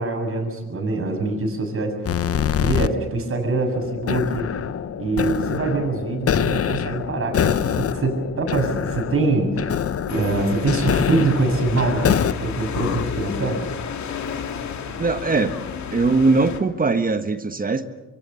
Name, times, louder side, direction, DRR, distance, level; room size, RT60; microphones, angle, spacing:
voice 1, 0.0-2.3 2.6-4.5 5.0-13.6, right 3 dB, 45° right, 4 dB, 7.3 m, -24 dB
sound 1, 2.0-2.9 3.7-12.3 12.7-13.7, left 8 dB, 50° left, 1.0 m, -25 dB
sound 2, 10.1-16.6, left 7 dB, 65° left, 2.6 m, -32 dB
voice 2, 15.0-15.6 15.9-17.9, right 3 dB, 30° right, 9 dB, 1.4 m, -20 dB
25.5 x 23.5 x 7.0 m, 1.1 s
cardioid pair, 90°, 30 cm